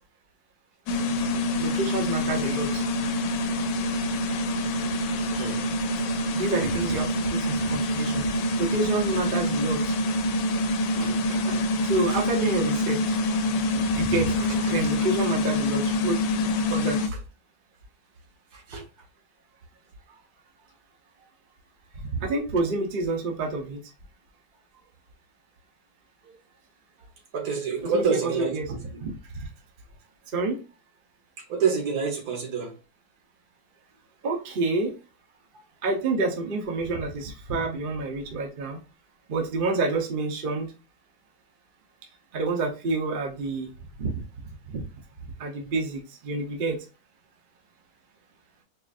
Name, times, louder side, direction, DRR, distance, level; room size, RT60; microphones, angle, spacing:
sound 1, 0.9-17.1, left 1 dB, 85° left, 1.2 m, -26 dB
voice 1, 1.6-2.8 6.3-8.3 8.6-9.9 11.8-13.2 13.8-17.0 22.1-23.8 27.8-28.7 29.0-29.1 29.4-29.5 30.3-30.6 34.2-34.9 35.8-38.8 39.3-40.7 42.3-43.7 44.0-44.2 44.7-44.8 45.4-46.8, right 3 dB, 45° right, 0.7 m, -28 dB
voice 2, 5.3-5.6 10.9-11.7 12.1-12.2 13.8-14.7 15.0-15.1 17.0-17.2 18.5-18.9 20.1-20.2 26.2-26.4 27.3-29.0 31.4-32.8, right 5 dB, 65° right, 1.5 m, -30 dB
4.7 x 2.5 x 2.5 m
omnidirectional pair, 1.9 m